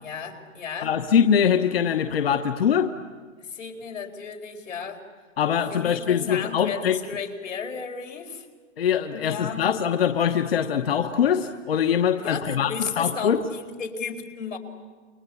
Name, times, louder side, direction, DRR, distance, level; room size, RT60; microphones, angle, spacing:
voice 1, 0.0-0.9 3.4-5.0 5.7-8.5 9.1-9.7 12.2-14.6, left 6 dB, 90° left, 3 dB, 4.8 m, -34 dB
voice 2, 0.8-2.9 5.4-7.0 8.8-12.7 13.0-13.4, left 8 dB, 50° left, 7 dB, 1.2 m, -22 dB
29.5 x 24.0 x 8.4 m, 1.4 s
hypercardioid pair, 175°, 37 cm